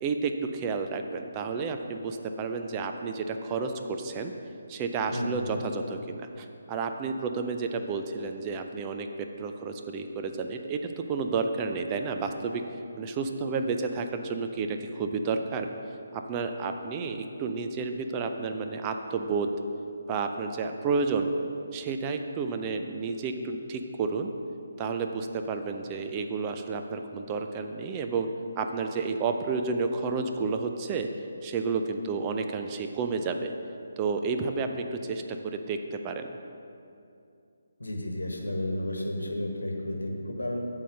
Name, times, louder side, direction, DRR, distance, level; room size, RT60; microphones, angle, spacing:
voice 1, 0.0-4.3 4.7-12.6 12.9-15.7 16.1-19.5 20.1-21.3 21.7-24.3 24.8-28.3 28.6-31.1 31.4-33.5 34.0-36.4, right 4 dB, 20° right, 5 dB, 0.4 m, -31 dB
voice 2, 5.1-5.6 37.8-40.6, left 1 dB, 80° left, 2 dB, 1.2 m, -32 dB
8.3 x 4.0 x 6.4 m, 2.6 s
figure-of-eight pair, 145°, 0 cm